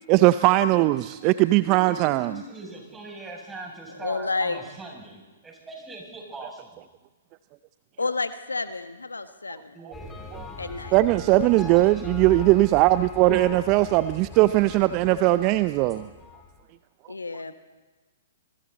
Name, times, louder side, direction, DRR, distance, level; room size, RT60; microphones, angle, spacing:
voice 1, 0.1-2.3 10.3-10.5 10.9-16.1, right 17 dB, 35° right, 14 dB, 0.5 m, -20 dB
voice 2, 0.6-6.8 9.7-10.6 11.5-12.2, right 2 dB, 10° right, -1 dB, 7.8 m, -42 dB
voice 3, 4.0-4.6 8.0-9.8 10.6-10.9 17.1-17.5, left 3 dB, 85° left, 10 dB, 1.3 m, -30 dB
sound 1, 9.9-16.6, left 4 dB, 10° left, 3.8 m, -40 dB
27.0 x 23.0 x 4.2 m, 1.2 s
figure-of-eight pair, 120°, 0 cm